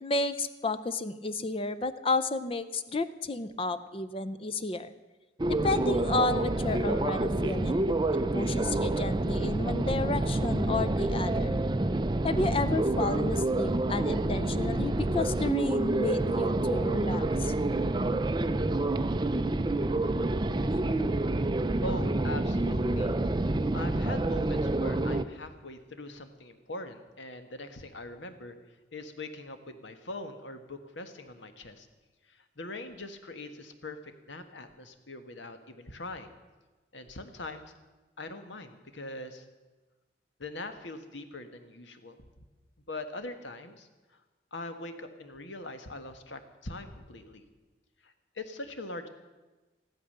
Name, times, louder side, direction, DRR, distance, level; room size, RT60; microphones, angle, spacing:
voice 1, 0.0-4.9 5.6-7.9 8.3-11.6 12.2-17.5 20.7-20.8, left 2 dB, 30° left, 12 dB, 0.5 m, -32 dB
sound 1, 5.4-25.2, right 2 dB, 25° right, 0.5 m, -28 dB
voice 2, 21.8-28.6 28.9-31.9 32.3-36.3 36.9-37.7 38.2-39.4 40.4-42.2 42.9-43.9 44.5-47.4 48.0-49.1, left 2 dB, 75° left, 8 dB, 1.4 m, -42 dB
14.5 x 12.0 x 6.6 m, 1.2 s
head